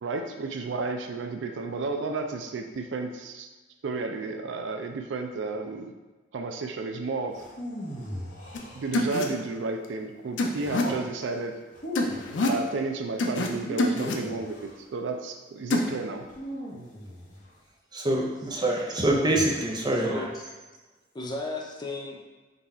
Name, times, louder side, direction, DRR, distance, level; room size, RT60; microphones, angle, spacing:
voice 1, 0.0-3.5 3.8-5.9 6.3-7.4 8.7-11.5 12.4-16.3, right 3 dB, 80° right, 5 dB, 0.4 m, -32 dB
sound 1, 7.3-9.3 10.6-11.1 11.7-12.4 13.5-14.8 16.3-17.5 19.1-19.9, equal, 45° left, 0.9 m, -38 dB
sound 2, 8.5-8.6 8.9-9.2 10.4-10.8 11.9-12.6 13.2-13.5 13.8-14.2 15.7-15.9, left 2 dB, 80° left, 0.5 m, -26 dB
voice 2, 17.9-20.2, right 1 dB, 25° right, -1 dB, 0.6 m, -25 dB
voice 3, 18.6-19.1 20.0-20.4 21.1-22.2, left 2 dB, 25° left, 0 dB, 0.5 m, -35 dB
3.9 x 2.3 x 4.2 m, 1.2 s
head